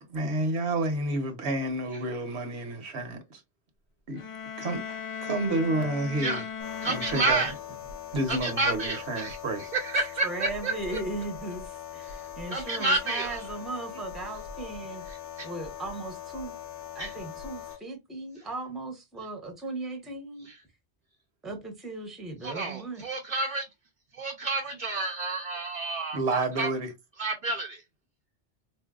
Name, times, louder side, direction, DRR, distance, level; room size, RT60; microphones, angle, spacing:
voice 1, 0.1-3.4 4.1-4.2 4.6-6.4 6.8-7.4 8.1-9.7 26.1-26.9, right 2 dB, 70° right, 1.1 m, -30 dB
sound 1, 4.1-8.0, left 7 dB, 55° left, 0.3 m, -38 dB
sound 2, 6.6-17.8, left 9 dB, 80° left, 0.9 m, -41 dB
voice 2, 6.8-7.5 8.3-9.4 9.7-11.0 12.0-12.2 12.5-13.4 15.1-15.5 17.0-17.2 20.4-20.6 22.4-23.7 24.1-26.7 27.2-27.8, right 2 dB, 55° right, 0.6 m, -30 dB
voice 3, 9.9-15.0 15.4-16.6 16.9-20.5 21.4-23.0, right 2 dB, ahead, 0.7 m, -37 dB
4.2 x 2.6 x 2.3 m
omnidirectional pair, 1.1 m